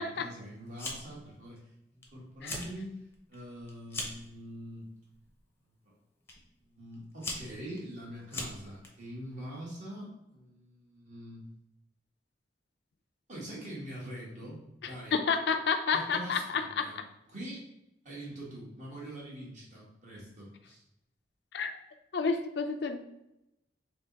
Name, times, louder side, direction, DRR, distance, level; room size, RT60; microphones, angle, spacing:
voice 1, 0.0-2.9 3.3-4.9 5.8-5.9 6.6-11.4 13.3-15.2 15.9-17.0 17.3-17.7 18.0-20.8, right 1 dB, 45° right, -5 dB, 1.5 m, -44 dB
Fire, 0.8-1.3 1.6-2.1 2.3-2.7 3.1-4.3 5.1-5.4 6.3-6.4 6.9-8.9, left 2 dB, 15° left, 0.7 m, -39 dB
voice 2, 14.8-16.9 21.5-21.8 22.1-23.0, left 5 dB, 65° left, 7 dB, 0.4 m, -30 dB
3.4 x 3.0 x 4.0 m, 0.85 s
head